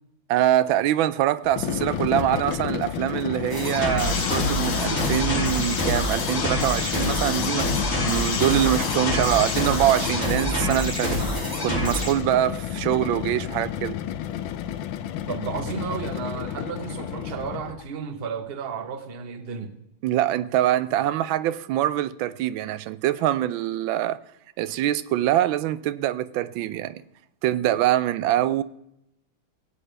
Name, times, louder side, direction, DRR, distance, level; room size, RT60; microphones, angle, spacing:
voice 1, 0.3-7.7 8.1-11.2 11.6-14.0 20.0-24.2 24.6-27.0 27.4-28.6, right 12 dB, 90° right, 1.3 m, -24 dB
sound 1, 1.4-17.9, left 10 dB, 90° left, 1.4 m, -31 dB
sound 2, 3.5-12.1, equal, 10° left, 2.6 m, -27 dB
sound 3, 4.0-10.2, left 6 dB, 60° left, 1.4 m, -30 dB
voice 2, 15.3-19.7, right 6 dB, 40° right, 0.9 m, -33 dB
17.5 x 9.4 x 3.3 m
omnidirectional pair, 2.1 m